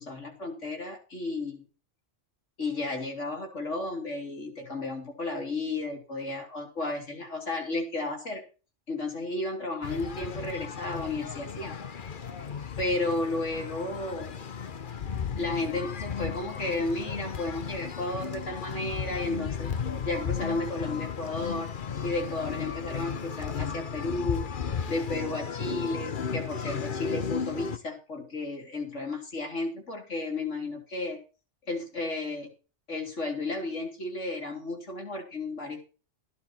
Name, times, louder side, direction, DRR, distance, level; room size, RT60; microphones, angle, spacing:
voice 1, 0.0-1.7 2.6-8.4 8.9-11.8 12.8-14.3 15.4-19.7 20.0-21.7 22.0-24.4 24.9-31.2 31.7-32.5 32.9-35.8, left 2 dB, 75° left, 2 dB, 3.7 m, -33 dB
sound 1, 9.8-27.8, left 7 dB, 45° left, 1.0 m, -35 dB
14.5 x 10.5 x 4.4 m, 0.33 s
omnidirectional pair, 1.2 m